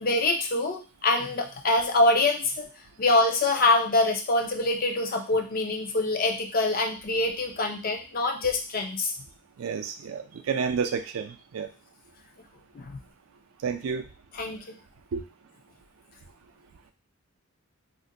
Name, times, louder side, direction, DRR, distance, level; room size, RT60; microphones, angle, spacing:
voice 1, 0.0-2.7 3.0-9.1 12.7-13.0 14.3-14.8, left 2 dB, 45° left, 3 dB, 0.5 m, -25 dB
voice 2, 9.6-11.7 13.6-14.0 15.1-15.2, right 6 dB, 70° right, 8 dB, 0.4 m, -30 dB
2.5 x 2.1 x 3.7 m, 0.32 s
head